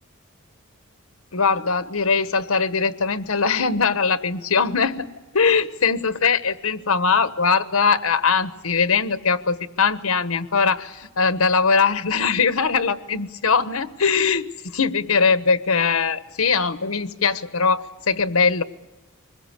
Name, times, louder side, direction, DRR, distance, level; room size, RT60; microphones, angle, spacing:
voice 1, 1.3-5.1 5.3-18.6, left 5 dB, 90° left, 12 dB, 1.2 m, -21 dB
25.0 x 21.0 x 8.3 m, 1.1 s
head